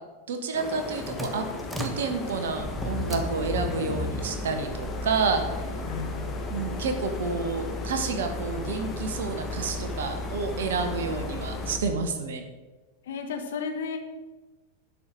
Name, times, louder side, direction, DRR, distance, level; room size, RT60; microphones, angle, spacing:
voice 1, 0.3-1.4 1.8-5.4 6.5-12.5, right 4 dB, 60° right, 6 dB, 1.4 m, -29 dB
sound 1, 0.5-11.8, left 3 dB, 25° left, 1.7 m, -38 dB
sound 2, 0.6-12.1, left 1 dB, 5° right, 1.3 m, -35 dB
voice 2, 5.9-6.4 13.1-14.0, left 5 dB, 60° left, 6 dB, 1.4 m, -33 dB
11.5 x 5.5 x 6.4 m, 1.2 s
figure-of-eight pair, 90°, 0 cm